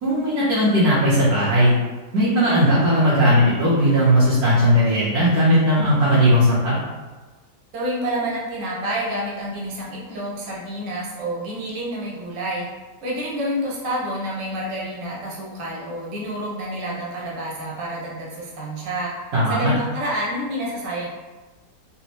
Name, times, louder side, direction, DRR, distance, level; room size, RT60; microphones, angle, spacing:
voice 1, 0.0-1.7 2.1-6.7 19.3-19.7, equal, 60° right, -10 dB, 1.3 m, -17 dB
voice 2, 7.7-12.7 13.0-19.1 19.5-21.1, right 1 dB, 85° right, -4 dB, 1.5 m, -28 dB
4.1 x 2.0 x 2.9 m, 1.2 s
omnidirectional pair, 1.9 m